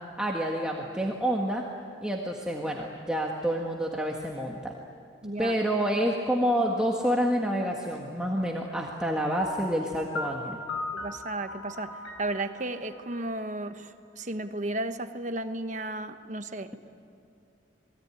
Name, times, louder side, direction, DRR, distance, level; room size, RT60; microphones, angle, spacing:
voice 1, 0.2-1.6 2.0-4.7 5.4-10.6, equal, 5° right, -2 dB, 1.7 m, -28 dB
voice 2, 5.2-5.6 10.9-16.7, right 2 dB, 40° right, 8 dB, 1.2 m, -34 dB
Piano, 9.4-14.2, left 2 dB, 90° left, 4.3 m, -38 dB
28.5 x 21.0 x 9.9 m, 2.3 s
head